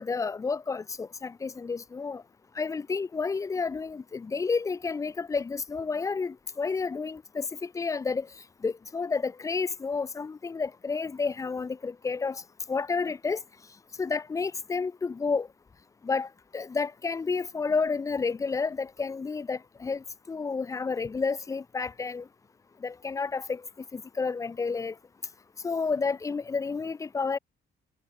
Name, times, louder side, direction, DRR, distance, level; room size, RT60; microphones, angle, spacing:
voice 1, 0.0-2.2 2.6-8.3 8.6-12.4 12.7-13.4 14.0-15.5 16.0-16.3 16.5-22.2 22.8-23.6 23.9-24.9 25.6-27.4, left 4 dB, 15° left, 0.5 m, -30 dB
cardioid pair, 170°, 19 cm